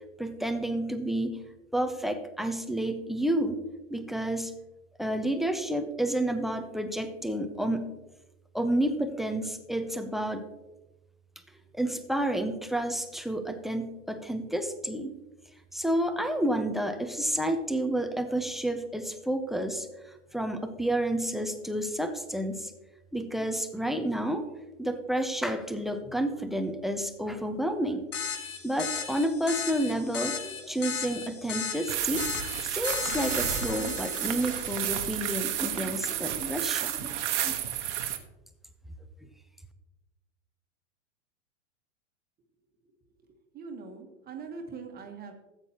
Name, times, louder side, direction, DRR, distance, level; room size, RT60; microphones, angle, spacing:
voice 1, 0.2-1.4 1.7-3.6 3.9-4.5 5.0-7.9 8.5-10.5 11.7-15.1 15.7-22.7 23.1-24.5 24.8-28.1 28.6-32.3 32.6-37.2 37.4-37.5, right 1 dB, ahead, 9 dB, 0.4 m, -30 dB
sound 1, 28.1-35.3, left 7 dB, 55° left, 1.8 m, -36 dB
sound 2, 31.9-38.2, right 11 dB, 65° right, 1.1 m, -31 dB
voice 2, 43.2-45.3, right 5 dB, 25° right, 4 dB, 1.2 m, -42 dB
14.0 x 8.2 x 2.8 m, 1.0 s
hypercardioid pair, 115°, 38 cm